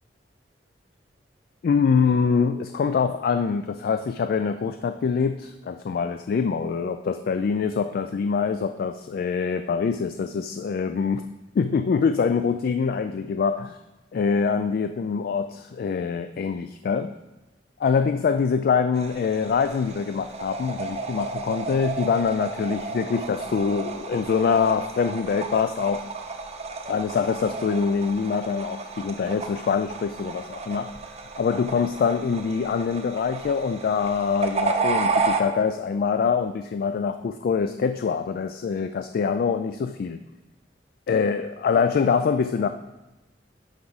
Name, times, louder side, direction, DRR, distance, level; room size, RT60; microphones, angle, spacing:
voice 1, 1.6-11.3 11.6-13.8 14.1-17.1 17.8-26.0 26.9-31.0 31.4-40.2 41.1-42.7, left 5 dB, 55° left, 9 dB, 0.3 m, -24 dB
sound 1, 18.9-35.4, right 4 dB, 35° right, 0.7 m, -32 dB
11.5 x 4.8 x 4.0 m, 1.0 s
head